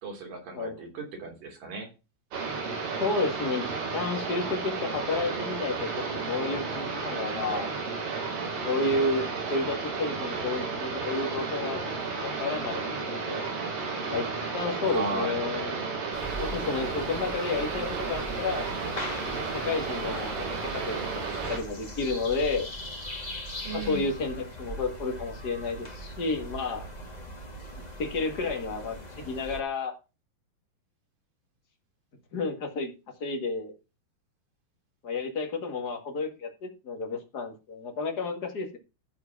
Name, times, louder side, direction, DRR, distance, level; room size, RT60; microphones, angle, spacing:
voice 1, 0.0-1.9 14.9-15.4 23.6-24.1, right 3 dB, 60° right, 1 dB, 4.9 m, -35 dB
sound 1, 2.3-21.6, right 4 dB, 80° right, 5.7 m, -33 dB
voice 2, 2.7-3.6 3.9-7.7 8.6-11.8 12.2-13.5 14.1-14.2 14.5-15.8 16.4-18.7 19.4-20.4 20.8-22.7 23.7-26.8 28.0-29.9 32.3-32.9 33.2-33.7 35.0-38.8, left 3 dB, 35° left, 3 dB, 1.7 m, -31 dB
sound 2, 16.1-29.6, equal, 55° left, 0.4 m, -40 dB
13.5 x 4.9 x 6.0 m, 0.30 s
omnidirectional pair, 4.4 m